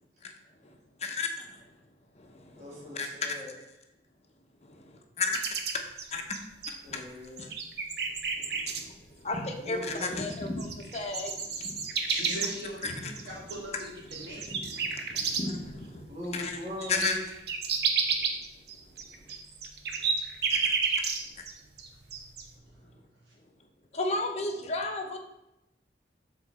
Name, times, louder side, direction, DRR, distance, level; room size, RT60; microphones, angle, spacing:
voice 1, 1.0-1.6 2.2-2.6 2.9-3.1 4.8-5.4 6.1-6.4 6.9-7.0 7.4-7.5 8.4-8.9 9.2-11.8 12.8-13.1 14.5-16.0 16.3-16.6 16.9-17.2 20.5-20.7 23.9-25.2, left 3 dB, 40° left, 4 dB, 0.8 m, -33 dB
voice 2, 2.6-3.6 6.8-7.5 9.6-10.1 16.1-17.2, left 1 dB, 45° right, -6 dB, 1.8 m, -40 dB
sound 1, 5.3-7.0 7.4-8.8 10.0-10.1 10.3-15.7 16.1-16.2 16.5-21.5 21.8-22.4, right 5 dB, 65° right, 0.8 m, -31 dB
voice 3, 12.1-12.9 13.2-14.5, right 1 dB, 90° right, -4 dB, 2.5 m, -38 dB
7.0 x 4.0 x 4.1 m, 0.89 s
head